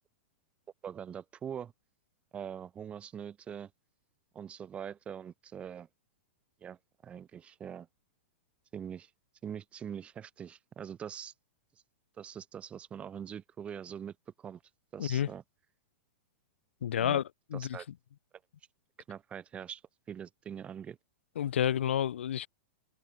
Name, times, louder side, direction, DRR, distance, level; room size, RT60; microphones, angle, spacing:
voice 1, 0.8-1.7 2.3-3.7 4.3-5.9 6.6-7.9 8.7-9.1 9.4-11.3 12.2-14.6 14.9-15.4 16.9-17.2 17.5-17.9 19.1-19.8 20.1-21.0, right 8 dB, 20° right, 4.1 m, -43 dB
voice 2, 16.8-17.2 17.5-17.8 21.4-22.5, left 10 dB, 80° left, 1.6 m, -29 dB
hypercardioid pair, 145°, 6 cm